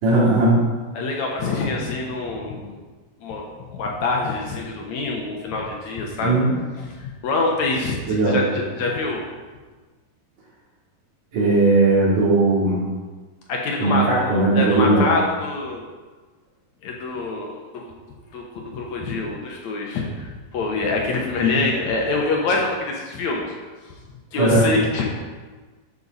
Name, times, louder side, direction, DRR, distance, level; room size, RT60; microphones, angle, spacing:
voice 1, 0.0-0.7 6.2-6.5 8.1-8.4 11.3-12.8 13.8-15.0 24.4-24.7, right 2 dB, 70° right, -7 dB, 4.7 m, -18 dB
voice 2, 1.0-2.8 3.2-6.4 6.8-9.2 13.5-15.8 16.8-17.8 18.3-23.5 24.3-25.2, left 3 dB, 65° left, 0 dB, 2.2 m, -25 dB
12.0 x 6.4 x 4.1 m, 1.3 s
omnidirectional pair, 3.8 m